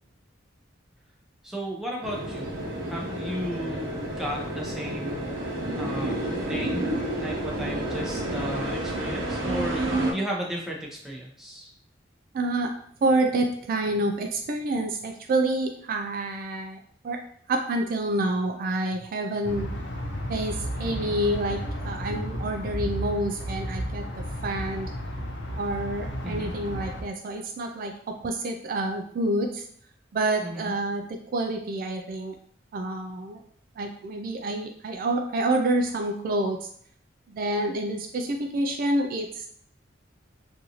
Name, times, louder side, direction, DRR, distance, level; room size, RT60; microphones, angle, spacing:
voice 1, 1.4-2.5 2.9-5.2 5.8-6.1 6.5-6.8 7.1-11.7 20.8-21.1 26.2-26.5 30.4-30.7, equal, ahead, -3 dB, 0.7 m, -34 dB
sound 1, 2.0-10.1, right 1 dB, 90° right, 0.8 m, -30 dB
voice 2, 12.3-12.7 13.0-17.2 17.5-19.7 20.3-24.9 25.5-29.6 30.1-32.4 32.7-33.4 33.8-36.7 37.3-39.5, right 2 dB, 50° right, 4 dB, 0.3 m, -28 dB
sound 2, 19.4-27.0, equal, 65° left, 0.7 m, -33 dB
3.9 x 2.6 x 2.9 m, 0.63 s
head